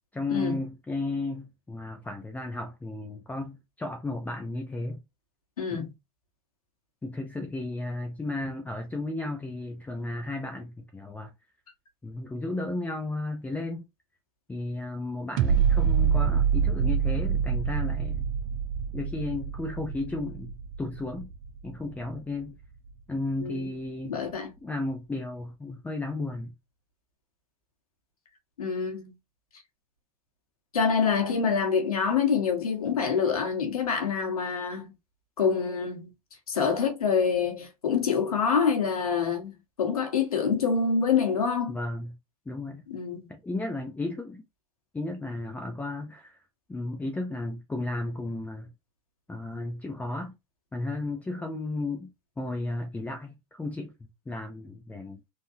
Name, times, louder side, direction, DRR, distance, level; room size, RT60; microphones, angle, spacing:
voice 1, 0.1-5.0 5.7-5.9 7.0-11.3 12.0-13.8 14.5-18.3 18.9-20.5 20.8-21.3 21.6-22.6 23.1-24.2 24.6-26.5 41.7-42.2 42.5-42.9 43.3-44.4 44.9-46.4 46.7-48.7 49.3-50.3 50.7-52.1 52.4-55.2, left 2 dB, 10° left, 0.6 m, -34 dB
voice 2, 5.6-5.9 23.4-23.6 24.1-24.5 28.6-29.1 30.7-34.9 35.4-36.1 36.5-39.5 39.8-41.7 42.9-43.3, left 6 dB, 85° left, 1.5 m, -26 dB
sound 1, 15.4-22.4 22.9-23.0, right 7 dB, 50° right, 0.8 m, -26 dB
3.8 x 2.6 x 2.7 m
hypercardioid pair, 100°, 18 cm